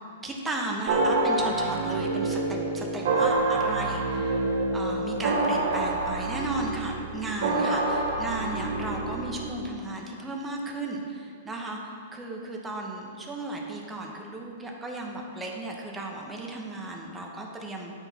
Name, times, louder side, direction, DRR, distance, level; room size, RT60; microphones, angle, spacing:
voice 1, 0.2-4.4 4.7-17.9, right 2 dB, 10° right, 0 dB, 0.9 m, -35 dB
sound 1, 0.9-9.6, right 2 dB, 65° right, 0.9 m, -27 dB
8.9 x 3.9 x 4.2 m, 2.4 s
hypercardioid pair, 130°, 0 cm